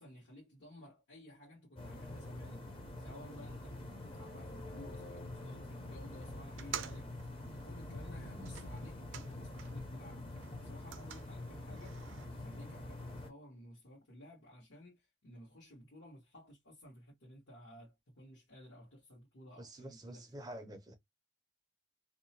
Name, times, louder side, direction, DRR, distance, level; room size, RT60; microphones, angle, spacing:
voice 1, 0.0-7.1 7.6-12.0 12.3-20.3, equal, 80° left, 1.3 m, -55 dB
sound 1, 1.8-13.3, left 2 dB, 30° left, 0.6 m, -46 dB
sound 2, 6.5-9.9 10.2-12.2, right 9 dB, 80° right, 0.4 m, -49 dB
voice 2, 19.6-20.9, right 1 dB, 20° right, 0.5 m, -48 dB
2.7 x 2.1 x 2.7 m
head